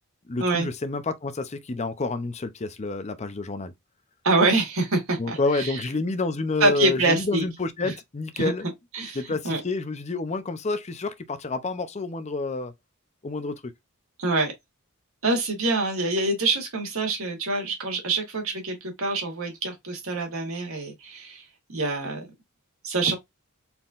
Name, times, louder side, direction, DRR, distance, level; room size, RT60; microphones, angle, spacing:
voice 1, 0.3-3.7 5.2-8.7 9.1-12.7 13.2-13.7, left 3 dB, 30° left, 0.6 m, -29 dB
voice 2, 4.2-5.8 6.6-7.4 7.8-7.9 8.4-8.5 8.9-9.2 9.4-9.6 14.2-14.5 15.2-21.4 21.7-22.2 22.8-23.2, right 2 dB, 70° right, 1.9 m, -25 dB
4.4 x 3.6 x 2.5 m
head